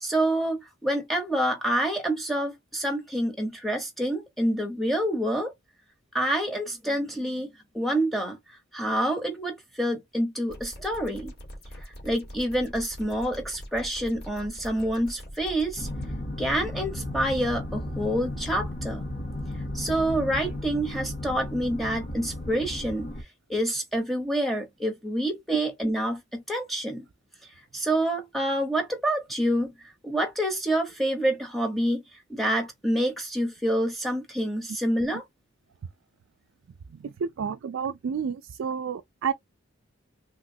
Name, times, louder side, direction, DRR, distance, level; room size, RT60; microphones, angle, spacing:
voice 1, 0.0-5.5 6.1-8.4 8.7-11.3 11.7-15.9 16.4-19.0 19.7-23.1 23.5-27.1 27.7-32.0 32.3-35.2, right 1 dB, ahead, 0.7 m, -27 dB
sound 1, 10.5-16.1, equal, 55° left, 1.7 m, -43 dB
sound 2, 15.7-23.2, left 1 dB, 35° left, 0.9 m, -34 dB
voice 2, 36.9-39.3, right 6 dB, 70° right, 0.3 m, -30 dB
3.0 x 2.9 x 2.6 m
head